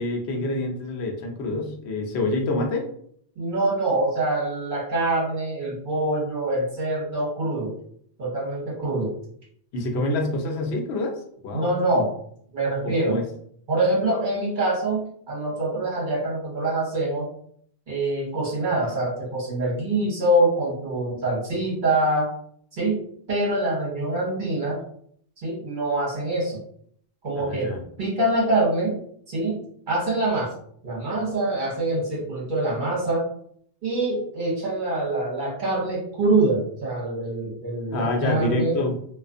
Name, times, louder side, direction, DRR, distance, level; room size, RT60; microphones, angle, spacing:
voice 1, 0.0-2.9 9.7-11.2 11.4-11.7 12.8-13.2 27.3-27.8 37.9-38.9, left 2 dB, 80° left, 2 dB, 0.9 m, -27 dB
voice 2, 3.4-7.7 8.2-9.1 11.5-12.1 12.5-13.2 13.7-17.3 17.9-22.3 22.7-23.0 23.3-24.8 25.4-26.6 27.2-29.0 29.3-29.6 29.9-30.5 30.8-33.3 33.8-38.8, right 2 dB, 50° right, -5 dB, 1.1 m, -25 dB
2.4 x 2.3 x 2.4 m, 0.64 s
omnidirectional pair, 1.1 m